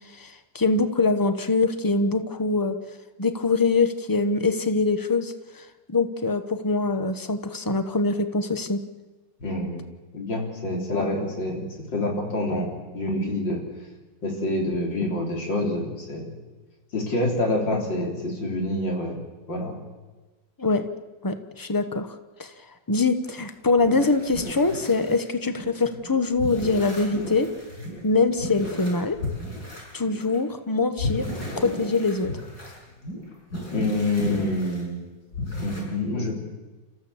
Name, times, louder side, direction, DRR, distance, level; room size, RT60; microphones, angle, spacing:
voice 1, 0.2-2.8 3.2-5.3 5.9-8.8 20.6-20.9 21.2-22.1 22.4-22.5 22.9-27.5 28.0-29.2 29.9-32.3, left 3 dB, 15° left, 9 dB, 0.8 m, -23 dB
voice 2, 9.4-9.9 10.1-11.7 11.9-13.6 14.2-16.3 16.9-19.2 19.5-19.8 33.7-35.0 35.6-36.4, left 1 dB, 80° left, 0 dB, 4.5 m, -27 dB
sound 1, 23.2-25.2 25.5-30.4 31.0-34.8 35.3-35.8, left 2 dB, 60° left, 6.4 m, -35 dB
30.0 x 14.0 x 7.2 m, 1.2 s
omnidirectional pair, 2.0 m